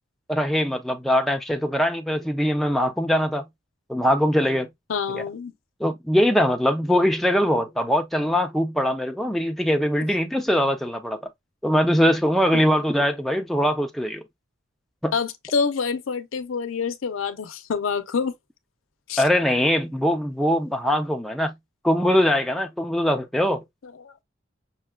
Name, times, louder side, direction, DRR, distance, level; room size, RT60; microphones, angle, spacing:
voice 1, 0.3-3.4 3.9-4.7 5.1-5.2 5.8-11.2 11.6-14.2 15.0-15.1 19.2-21.5 21.8-23.6, equal, ahead, 0.3 m, -22 dB
voice 2, 4.9-5.5 12.5-12.7 15.1-18.3 19.1-19.2 23.8-24.2, left 5 dB, 90° left, 0.5 m, -27 dB
5.5 x 2.2 x 2.2 m
head